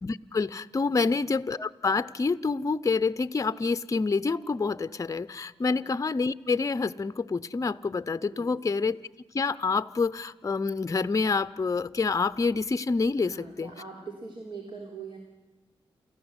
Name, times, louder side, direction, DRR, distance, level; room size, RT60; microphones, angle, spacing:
voice 1, 0.0-9.0 9.3-13.7, left 4 dB, 35° left, 14 dB, 0.7 m, -27 dB
voice 2, 13.2-15.2, right 4 dB, 55° right, 0 dB, 3.7 m, -42 dB
29.0 x 14.5 x 8.1 m, 1.1 s
cardioid pair, 65°, 10 cm